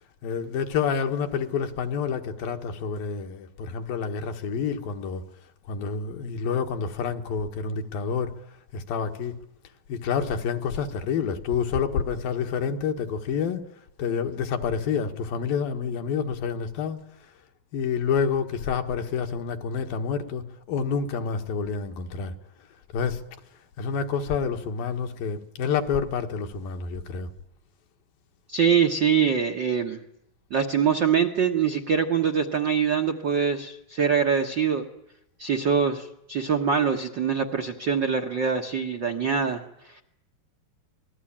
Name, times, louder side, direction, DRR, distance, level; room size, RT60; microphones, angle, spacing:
voice 1, 0.2-5.2 5.7-8.3 8.7-9.3 9.9-13.6 14.0-17.0 17.7-22.3 22.9-23.2 23.8-27.3, left 6 dB, 80° left, 3.3 m, -28 dB
voice 2, 28.5-30.0 30.5-34.9 35.4-39.6 39.9-40.0, right 7 dB, 70° right, 1.0 m, -24 dB
26.5 x 20.0 x 8.7 m
omnidirectional pair, 4.1 m